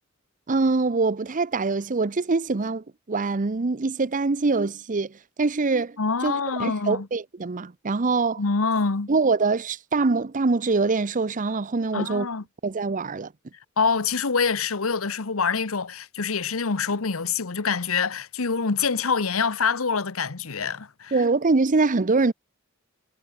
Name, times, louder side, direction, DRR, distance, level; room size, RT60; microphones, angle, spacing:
voice 1, 0.5-5.1 5.4-6.0 6.2-6.3 6.6-8.4 9.1-12.3 12.6-13.3 21.1-22.3, right 3 dB, 40° right, 0.7 m, -24 dB
voice 2, 6.0-7.1 8.4-9.1 11.9-12.4 13.8-21.1, left 5 dB, 85° left, 1.1 m, -25 dB
head